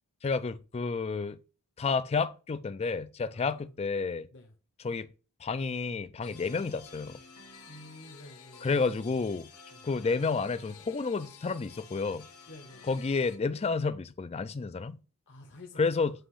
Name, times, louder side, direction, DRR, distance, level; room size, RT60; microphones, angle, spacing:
voice 1, 0.2-1.4 1.8-4.3 4.8-5.1 5.4-7.2 8.6-9.5 9.8-12.3 12.9-15.0 15.8-16.1, left 4 dB, 30° left, 0.4 m, -30 dB
sound 1, 6.2-13.4, left 5 dB, 85° left, 1.3 m, -52 dB
voice 2, 7.7-8.8 9.7-9.8 12.5-12.9 15.3-16.1, left 2 dB, 55° left, 1.0 m, -50 dB
7.6 x 3.0 x 4.8 m
head